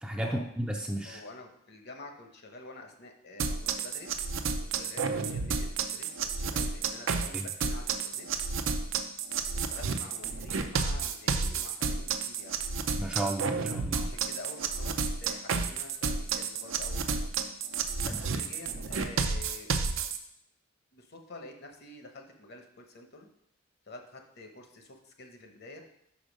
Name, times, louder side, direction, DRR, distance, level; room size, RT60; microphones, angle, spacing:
voice 1, 0.0-1.2 7.3-7.5 12.9-14.1 18.0-18.2, right 1 dB, 5° right, 1 dB, 0.4 m, -33 dB
voice 2, 1.0-4.2 4.6-8.3 9.5-12.6 14.0-15.0 15.2-17.2 18.0-19.7 20.9-23.3 23.8-25.8, left 2 dB, 50° left, 4 dB, 0.9 m, -48 dB
sound 1, 3.4-20.2, right 5 dB, 70° right, 0.5 m, -31 dB
5.4 x 5.1 x 5.2 m, 0.74 s
head